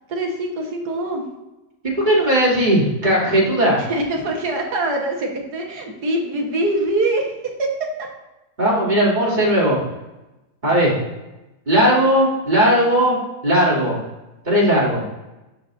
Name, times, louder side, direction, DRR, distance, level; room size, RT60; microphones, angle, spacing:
voice 1, 0.1-1.3 3.8-8.1, right 2 dB, 70° right, 1 dB, 1.8 m, -24 dB
voice 2, 1.8-3.8 8.6-9.8 10.6-10.9 11.7-13.2 13.4-14.0 14.4-15.0, equal, 25° right, -6 dB, 2.8 m, -17 dB
12.5 x 5.1 x 2.6 m, 1.0 s
omnidirectional pair, 1.8 m